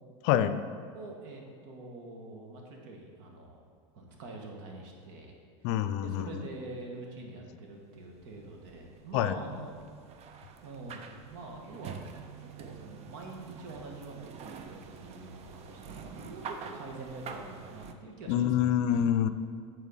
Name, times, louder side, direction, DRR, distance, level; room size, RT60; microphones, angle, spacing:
voice 1, 0.2-0.6 5.6-6.3 9.1-9.3 18.3-19.3, left 10 dB, 60° left, 12 dB, 0.5 m, -26 dB
voice 2, 0.9-3.6 3.9-9.7 10.6-12.1 12.4-19.0, right 2 dB, 65° right, 1 dB, 1.5 m, -45 dB
sound 1, 7.9-17.9, right 6 dB, 40° right, 0.6 m, -46 dB
9.5 x 4.3 x 4.0 m, 2.1 s
hypercardioid pair, 100°, 17 cm